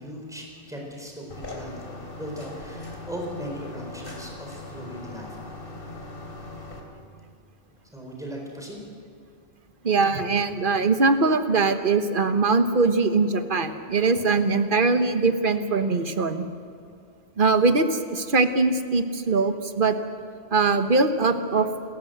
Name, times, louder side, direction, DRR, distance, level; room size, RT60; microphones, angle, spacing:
voice 1, 0.0-5.5 7.9-8.8, equal, 5° right, 0 dB, 4.2 m, -38 dB
sound 1, 1.3-6.8, left 2 dB, 60° left, 3.6 m, -39 dB
voice 2, 9.8-16.4 17.4-19.9 20.5-21.7, right 3 dB, 55° right, 8 dB, 1.4 m, -22 dB
28.5 x 14.0 x 8.0 m, 2.4 s
omnidirectional pair, 1.0 m